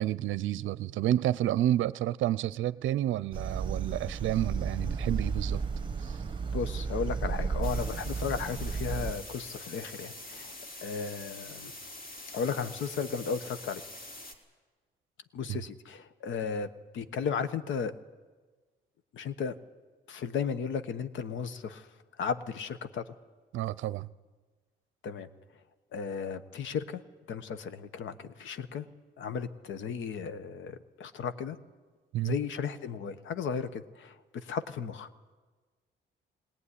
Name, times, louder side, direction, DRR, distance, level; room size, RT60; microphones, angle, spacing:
voice 1, 0.0-5.6 6.0-6.2 15.5-15.6 23.5-24.1 32.1-32.4, right 13 dB, 75° right, 18 dB, 0.6 m, -30 dB
sound 1, 3.3-9.1, right 5 dB, 25° right, 1.5 m, -33 dB
voice 2, 6.5-10.5 10.8-11.7 12.3-13.8 15.3-17.9 19.1-19.5 20.1-21.9 22.2-23.0 25.0-25.3 25.9-27.0 27.3-28.9 29.2-31.6 32.2-35.1, left 6 dB, 75° left, 12 dB, 1.2 m, -35 dB
sound 2, 7.6-14.3, left 2 dB, 50° left, 3.7 m, -45 dB
19.5 x 18.5 x 9.9 m, 1.4 s
cardioid pair, 90°, 20 cm